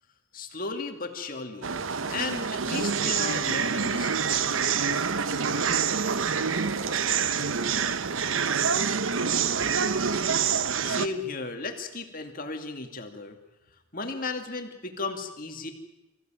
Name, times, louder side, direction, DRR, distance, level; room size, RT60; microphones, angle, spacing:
voice 1, 0.3-1.7 2.1-4.6 10.8-13.4 13.9-15.7, left 3 dB, 45° left, 5 dB, 2.5 m, -35 dB
sound 1, 1.6-11.1, right 6 dB, 85° right, 1.0 m, -26 dB
voice 2, 5.4-5.5, right 1 dB, 60° right, 4 dB, 5.0 m, -50 dB
25.5 x 15.5 x 9.2 m, 1.1 s
head